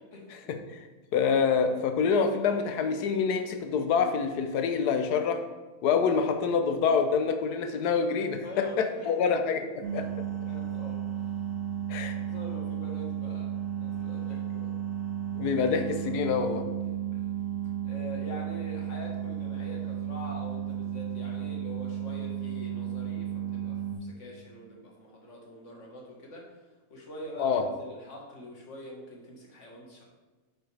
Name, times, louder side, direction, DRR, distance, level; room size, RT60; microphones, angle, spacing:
voice 1, 0.1-0.5 8.4-9.3 10.5-11.0 12.1-13.5 13.8-14.7 17.1-17.3 17.8-26.5 26.9-30.0, left 1 dB, 50° left, -2 dB, 1.8 m, -44 dB
voice 2, 1.1-5.5 5.8-10.3 11.9-12.2 15.4-16.7 27.4-27.7, left 6 dB, 85° left, 7 dB, 1.3 m, -26 dB
sound 1, 9.8-23.9, right 9 dB, 55° right, 2.1 m, -34 dB
7.7 x 6.8 x 3.4 m, 1.2 s
omnidirectional pair, 1.6 m